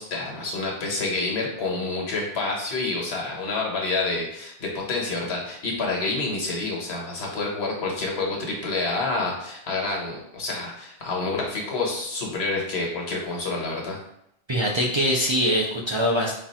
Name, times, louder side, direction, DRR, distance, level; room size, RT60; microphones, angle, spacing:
voice 1, 0.0-14.0, left 3 dB, 80° left, -1 dB, 1.3 m, -28 dB
voice 2, 14.5-16.3, equal, 40° right, -2 dB, 0.4 m, -23 dB
4.0 x 2.4 x 4.1 m, 0.79 s
omnidirectional pair, 1.1 m